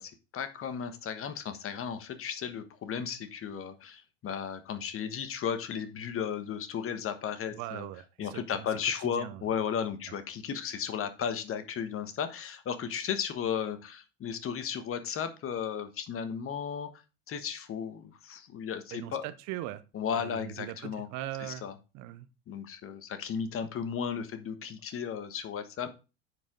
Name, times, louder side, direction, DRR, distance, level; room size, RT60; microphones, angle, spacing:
voice 1, 0.0-7.9 8.2-16.9 17.3-19.2 19.9-21.1 21.4-21.7 22.5-25.9, left 7 dB, 35° left, 10 dB, 1.3 m, -35 dB
voice 2, 7.5-8.7 9.0-9.4 18.9-19.8 20.2-21.6 21.9-22.3, right 14 dB, 50° right, 13 dB, 0.8 m, -40 dB
9.5 x 4.9 x 3.8 m, 0.30 s
hypercardioid pair, 75°, 37 cm